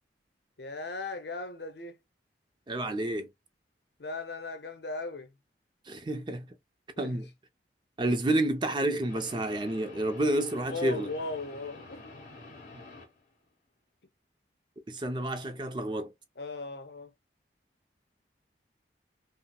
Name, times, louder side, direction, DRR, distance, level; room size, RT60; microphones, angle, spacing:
voice 1, 0.6-2.0 4.0-5.3 7.0-7.2 10.7-12.0 16.4-17.1, left 3 dB, 70° left, 0.8 m, -37 dB
voice 2, 2.7-3.3 5.9-6.5 7.0-7.3 8.0-11.1 14.9-16.1, right 1 dB, 25° right, 0.4 m, -29 dB
sound 1, 9.1-13.3, left 3 dB, 45° left, 1.5 m, -48 dB
5.5 x 2.0 x 2.2 m
head